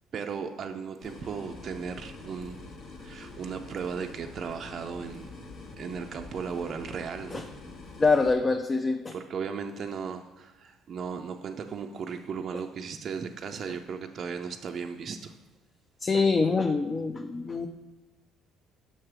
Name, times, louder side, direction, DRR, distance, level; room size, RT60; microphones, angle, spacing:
voice 1, 0.1-2.7 3.0-5.4 5.8-7.5 9.1-15.4, right 6 dB, 50° right, 5 dB, 0.4 m, -36 dB
sound 1, 1.0-8.3, left 2 dB, 60° left, 1.1 m, -45 dB
voice 2, 8.0-9.1 16.0-17.7, left 4 dB, 30° left, 5 dB, 0.4 m, -25 dB
6.6 x 3.2 x 5.9 m, 1.2 s
supercardioid pair, 80°, 0 cm